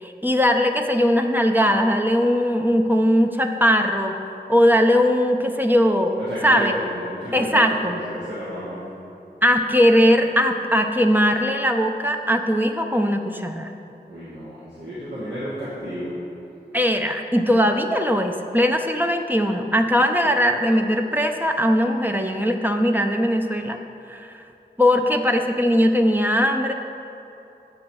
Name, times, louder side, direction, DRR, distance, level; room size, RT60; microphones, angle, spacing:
voice 1, 0.0-4.2 4.5-6.7 7.3-8.0 9.4-13.7 16.7-23.8 24.1-24.4 24.8-26.7, equal, 10° right, 4 dB, 0.5 m, -20 dB
voice 2, 6.3-8.8 14.1-16.2, equal, 75° right, -11 dB, 1.7 m, -32 dB
7.8 x 4.2 x 6.2 m, 2.8 s
wide cardioid pair, 45°, 18 cm